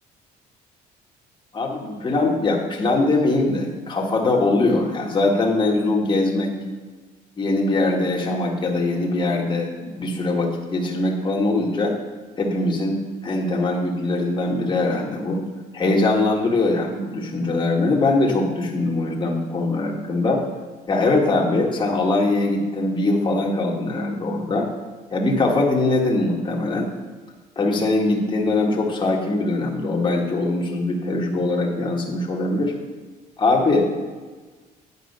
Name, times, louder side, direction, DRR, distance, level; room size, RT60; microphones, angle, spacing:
voice 1, 1.5-6.5 7.4-11.9 12.4-13.0 13.2-15.4 15.7-20.4 20.9-24.7 25.1-26.9 27.5-32.7 33.4-33.8, left 2 dB, 30° left, -1 dB, 1.7 m, -22 dB
9.8 x 5.3 x 5.4 m, 1.4 s
cardioid pair, 110°, 17 cm